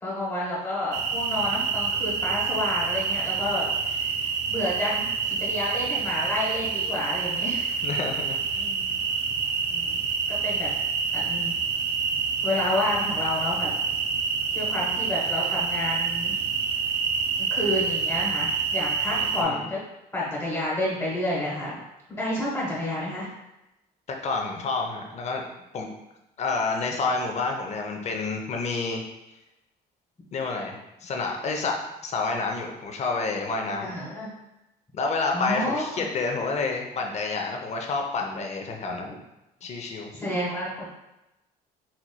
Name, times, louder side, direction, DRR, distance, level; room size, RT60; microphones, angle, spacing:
voice 1, 0.0-4.1 4.5-7.7 8.6-8.9 9.7-10.0 10.3-10.7 11.1-11.5 12.4-13.7 14.5-16.3 17.4-19.8 20.1-21.8 22.1-23.3 33.8-34.3 35.3-36.1 39.0-39.1 40.1-40.9, left 1 dB, 15° left, -6 dB, 1.1 m, -30 dB
sound 1, 0.9-19.4, right 5 dB, 85° right, 0.5 m, -27 dB
voice 2, 7.8-8.6 19.1-19.6 24.1-25.4 25.7-25.9 26.4-29.0 30.3-33.9 34.9-39.1 39.6-40.1, left 3 dB, 40° left, 2 dB, 0.6 m, -29 dB
4.2 x 3.0 x 2.2 m, 0.93 s
cardioid pair, 110°, 17 cm